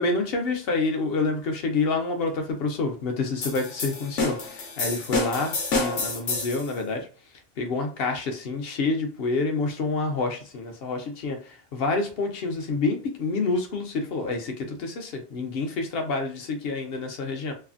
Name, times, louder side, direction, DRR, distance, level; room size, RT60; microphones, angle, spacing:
voice 1, 0.0-7.1 7.6-17.5, left 3 dB, 60° left, 4 dB, 0.8 m, -28 dB
sound 1, 3.4-6.7, left 3 dB, 80° left, 1.1 m, -28 dB
3.2 x 2.0 x 2.4 m, 0.37 s
omnidirectional pair, 1.2 m